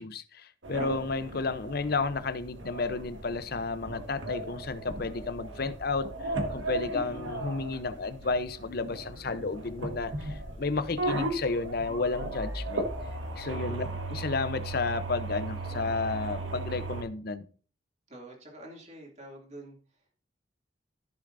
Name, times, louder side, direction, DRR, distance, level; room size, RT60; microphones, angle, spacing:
voice 1, 0.0-12.9 13.4-17.4, left 3 dB, 50° left, 0.7 m, -32 dB
sound 1, 0.6-17.0, right 2 dB, 75° right, 1.6 m, -36 dB
voice 2, 6.9-8.0 13.4-13.9 18.1-20.1, right 1 dB, 35° right, 2.6 m, -47 dB
14.5 x 6.8 x 2.6 m
head